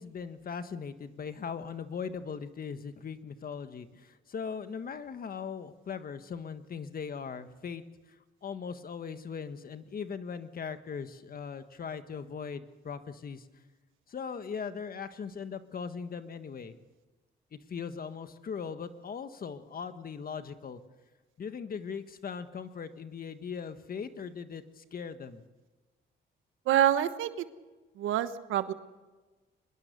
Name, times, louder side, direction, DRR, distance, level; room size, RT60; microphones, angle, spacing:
voice 1, 0.0-7.8 8.1-13.5 14.1-16.7 17.5-20.8 21.4-25.4, left 6 dB, 45° left, 10 dB, 1.6 m, -39 dB
voice 2, 26.7-27.4 28.0-28.7, right 11 dB, 85° right, 11 dB, 1.2 m, -26 dB
24.0 x 21.0 x 6.8 m, 1.2 s
cardioid pair, 90°, 20 cm